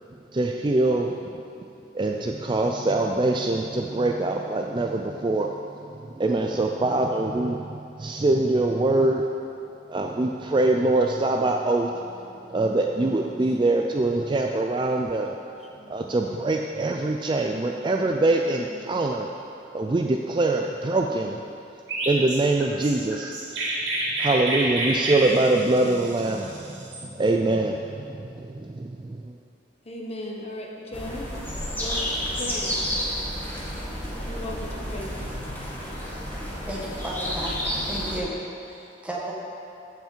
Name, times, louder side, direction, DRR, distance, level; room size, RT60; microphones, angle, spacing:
voice 1, 0.3-1.7 1.9-9.3 9.9-15.4 15.9-19.3 19.7-21.5 22.1-23.6 24.2-29.3, right 2 dB, 25° right, 2 dB, 0.4 m, -24 dB
voice 2, 13.4-13.8 15.7-16.2 17.9-19.0 29.8-31.3 31.8-32.0 32.3-32.9 34.3-35.1, left 1 dB, 35° left, -1 dB, 1.1 m, -38 dB
Chirp tweet, 21.9-27.0, right 1 dB, 90° right, 2.7 m, -28 dB
sound 1, 30.9-38.2, equal, 10° left, 1.7 m, -31 dB
voice 3, 36.4-38.3 38.6-39.3, right 1 dB, 5° right, -4 dB, 1.5 m, -34 dB
14.5 x 5.7 x 4.6 m, 2.6 s
head